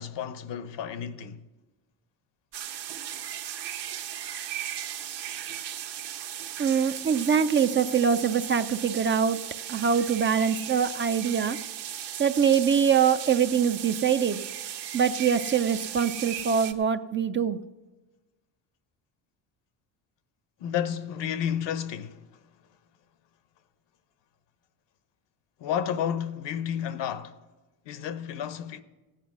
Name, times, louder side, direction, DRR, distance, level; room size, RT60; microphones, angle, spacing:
voice 1, 0.0-1.4 20.6-22.2 25.6-27.4 27.9-28.8, left 9 dB, 70° left, 1.0 m, -31 dB
sound 1, 2.5-16.7, right 10 dB, 65° right, 1.2 m, -37 dB
voice 2, 6.6-9.4 9.7-11.6 12.2-14.4 14.9-17.6, right 7 dB, 30° right, 0.4 m, -24 dB
15.5 x 9.1 x 6.1 m
cardioid pair, 120°, 44 cm